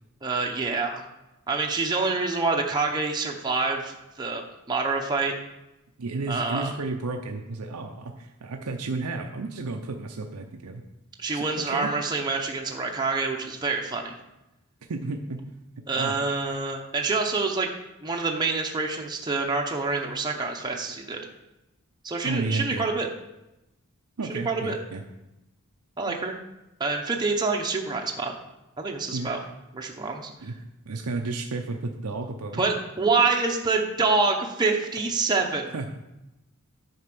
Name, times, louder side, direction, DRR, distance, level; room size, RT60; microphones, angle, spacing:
voice 1, 0.2-1.0 1.5-5.3 6.3-6.7 11.2-14.1 15.9-17.7 18.0-21.2 22.0-23.1 24.3-24.8 26.0-26.4 26.8-28.3 28.8-29.4 29.7-30.5 32.5-35.7, right 3 dB, 20° right, 1 dB, 0.7 m, -26 dB
voice 2, 6.0-10.8 11.3-11.9 14.9-15.4 15.9-16.2 22.2-22.9 24.2-25.0 26.1-26.2 29.1-29.3 30.4-30.5 30.9-32.6 35.7-35.9, right 3 dB, 85° right, 3 dB, 0.7 m, -32 dB
9.7 x 4.3 x 6.0 m, 0.95 s
head